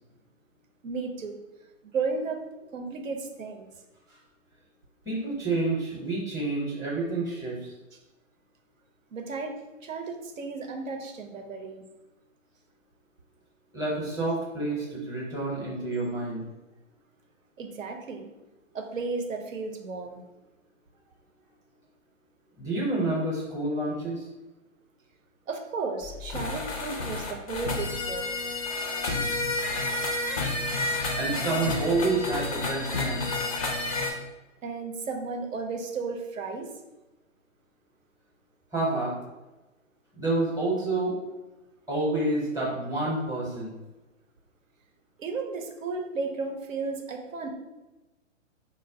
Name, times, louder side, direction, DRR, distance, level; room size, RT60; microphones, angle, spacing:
voice 1, 0.8-1.4 1.9-2.4 2.7-3.7 7.9-8.0 9.1-11.8 17.6-18.3 18.7-20.2 25.5-28.3 34.6-36.7 45.2-47.5, right 4 dB, 80° right, 4 dB, 0.7 m, -34 dB
voice 2, 5.0-7.7 13.7-16.4 22.6-24.3 31.1-33.4 38.7-39.1 40.1-41.2 41.9-43.7, right 2 dB, 10° right, -6 dB, 0.6 m, -28 dB
sound 1, 26.0-34.1, left 2 dB, 30° left, 0.3 m, -30 dB
4.1 x 2.0 x 2.6 m, 1.1 s
hypercardioid pair, 130°, 39 cm